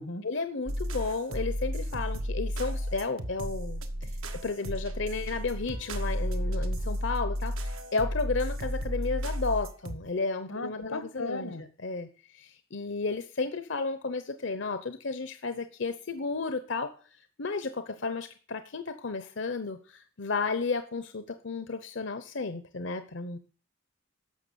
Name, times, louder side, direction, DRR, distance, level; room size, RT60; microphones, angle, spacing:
voice 1, 0.2-4.1 4.4-11.5 11.8-12.1 12.3-16.9 17.4-23.4, left 4 dB, 60° left, 9 dB, 0.8 m, -33 dB
sound 1, 0.7-10.0, equal, 80° right, 1.4 m, -33 dB
voice 2, 10.5-11.6, left 2 dB, 90° left, 10 dB, 1.7 m, -36 dB
11.5 x 7.0 x 6.9 m, 0.40 s
head